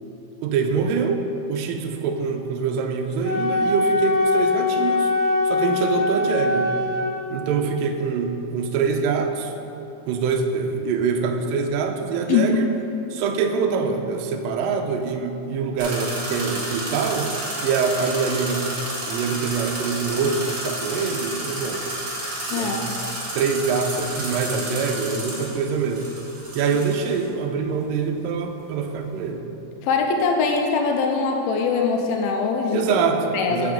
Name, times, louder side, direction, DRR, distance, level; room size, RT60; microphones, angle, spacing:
voice 1, 0.4-1.2 1.5-5.1 5.5-6.7 7.3-9.5 10.1-12.7 13.1-17.3 17.6-18.7 19.1-21.9 22.5-22.9 23.3-26.1 26.6-29.5 32.7-33.7, right 5 dB, 85° right, 4 dB, 2.0 m, -24 dB
Wind instrument woodwind instrument, 3.2-7.1, left 3 dB, 60° left, 3.3 m, -22 dB
voice 2, 12.3-12.6 22.5-22.9 29.8-33.0 33.3-33.7, left 5 dB, 80° left, 2 dB, 2.3 m, -22 dB
sound 1, 15.8-27.2, right 1 dB, 55° right, 1.3 m, -31 dB
9.7 x 5.8 x 5.0 m, 2.9 s
omnidirectional pair, 4.7 m